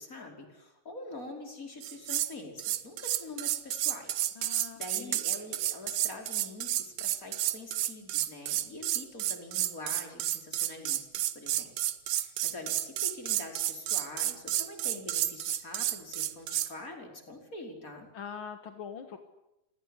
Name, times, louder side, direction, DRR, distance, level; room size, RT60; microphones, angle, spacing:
voice 1, 0.0-11.8 12.1-18.1, left 2 dB, 25° left, 3 dB, 5.4 m, -45 dB
sound 1, 1.8-2.3 2.6-16.7, right 13 dB, 75° right, 2.7 m, -31 dB
voice 2, 4.4-5.2 18.1-19.2, left 7 dB, 50° left, 7 dB, 1.8 m, -43 dB
29.0 x 20.0 x 10.0 m, 0.88 s
omnidirectional pair, 4.0 m